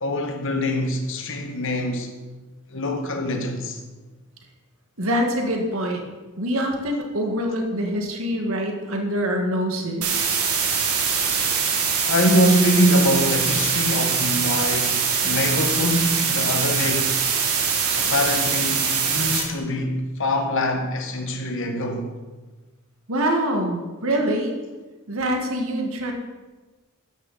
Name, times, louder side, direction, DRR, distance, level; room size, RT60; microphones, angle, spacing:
voice 1, 0.0-2.1 2.7-3.8 12.0-17.2 18.0-22.1, equal, 60° left, 1.6 m, -24 dB
voice 2, 5.0-6.1 6.4-10.3 23.1-24.6 25.1-26.1, equal, 65° right, 1.8 m, -25 dB
sound 1, 10.0-19.4, right 6 dB, 85° right, 2.3 m, -23 dB
13.5 x 10.0 x 4.2 m
head